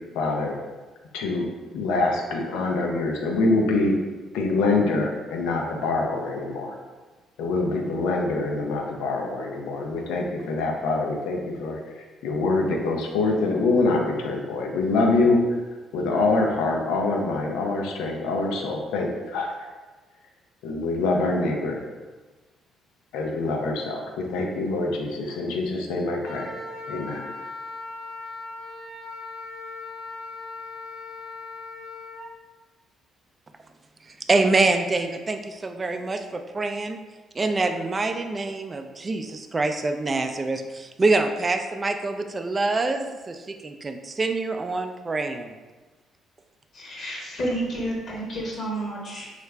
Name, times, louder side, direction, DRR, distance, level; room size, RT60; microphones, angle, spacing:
voice 1, 0.1-0.6 1.1-4.0 4.3-6.8 7.4-11.8 12.2-15.6 15.9-19.5 20.6-21.8 23.1-26.5 26.9-27.3, left 3 dB, 85° left, 1 dB, 0.5 m, -25 dB
Wind instrument woodwind instrument, 26.2-32.3, left 3 dB, 85° right, 0.8 m, -38 dB
voice 2, 34.3-37.0 37.3-45.5, right 3 dB, 30° right, 6 dB, 0.3 m, -25 dB
voice 3, 46.7-49.3, right 1 dB, 60° left, -3 dB, 0.9 m, -30 dB
3.2 x 2.4 x 3.2 m, 1.3 s
supercardioid pair, 65°, 0 cm